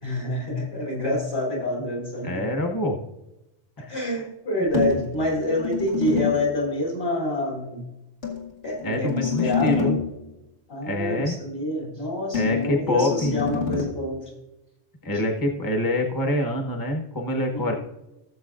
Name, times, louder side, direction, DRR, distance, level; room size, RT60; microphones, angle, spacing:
voice 1, 0.0-2.5 3.9-7.8 8.6-10.0 10.7-14.2 17.5-17.8, left 1 dB, 60° left, -3 dB, 3.5 m, -27 dB
voice 2, 2.2-3.0 3.8-4.0 8.8-10.0 10.8-11.4 12.3-13.4 15.0-17.7, left 1 dB, 20° left, 2 dB, 0.9 m, -25 dB
sound 1, 4.7-6.5 8.2-10.2 12.3-13.8, left 7 dB, 80° left, 2.4 m, -27 dB
16.5 x 7.4 x 2.5 m, 0.95 s
omnidirectional pair, 1.2 m